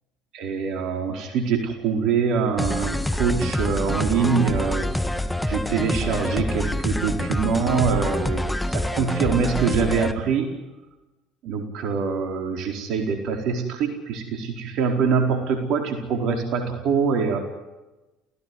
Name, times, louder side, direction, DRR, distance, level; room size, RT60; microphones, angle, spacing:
voice 1, 0.3-5.2 5.5-8.4 8.7-10.5 11.4-17.4, right 5 dB, 60° right, 4 dB, 4.5 m, -24 dB
sound 1, 2.6-10.1, left 1 dB, 5° left, 1.8 m, -26 dB
28.5 x 17.0 x 9.8 m, 1.1 s
hypercardioid pair, 60°, 0 cm